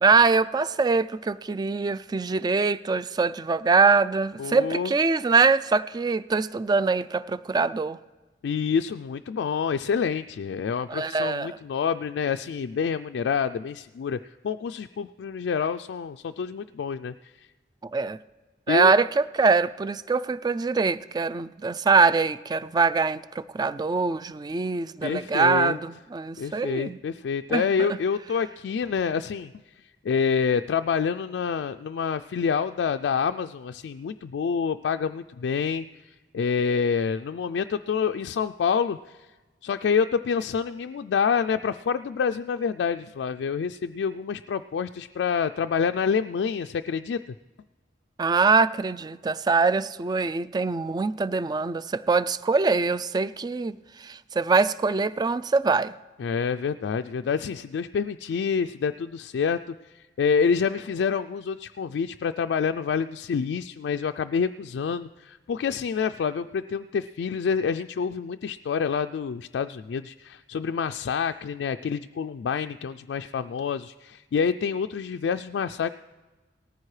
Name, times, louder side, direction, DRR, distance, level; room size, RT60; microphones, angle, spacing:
voice 1, 0.0-8.0 10.9-11.6 17.8-18.2 18.7-27.0 27.5-27.7 48.2-53.7 54.0-55.9, right 4 dB, 25° right, 16 dB, 0.3 m, -23 dB
voice 2, 4.4-4.9 8.4-14.2 14.4-17.3 18.7-18.9 25.0-25.8 26.4-29.7 30.0-35.9 36.3-39.3 39.6-47.2 56.2-76.0, left 6 dB, 85° left, 7 dB, 0.3 m, -27 dB
18.5 x 14.0 x 3.2 m, 1.2 s
head